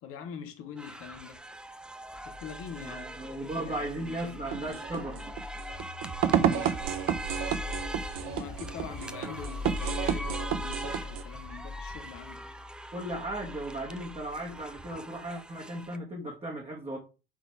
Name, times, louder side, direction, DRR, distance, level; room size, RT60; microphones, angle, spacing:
voice 1, 0.0-1.4 2.2-4.8 6.4-6.8 8.2-12.4, left 8 dB, 45° left, 1.7 m, -44 dB
sound 1, 0.8-16.0, right 1 dB, 5° right, 0.7 m, -42 dB
sound 2, 2.1-15.3, left 4 dB, 30° left, 2.2 m, -43 dB
voice 2, 2.7-5.2 9.2-9.3 12.9-17.0, right 1 dB, 20° right, 2.0 m, -36 dB
sound 3, 4.5-11.2, right 9 dB, 45° right, 0.9 m, -31 dB
8.5 x 4.0 x 4.8 m
figure-of-eight pair, 70°, 32 cm